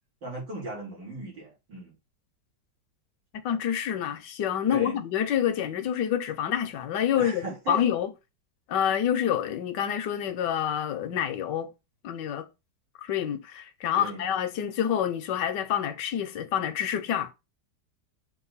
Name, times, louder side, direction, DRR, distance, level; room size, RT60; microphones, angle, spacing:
voice 1, 0.2-1.9 4.7-5.0 7.1-7.9 14.0-14.2, right 2 dB, 85° right, 4.5 m, -37 dB
voice 2, 3.3-8.1 8.7-11.7 12.0-12.5 13.0-17.3, left 9 dB, 80° left, 1.4 m, -27 dB
6.7 x 2.6 x 5.5 m
omnidirectional pair, 1.9 m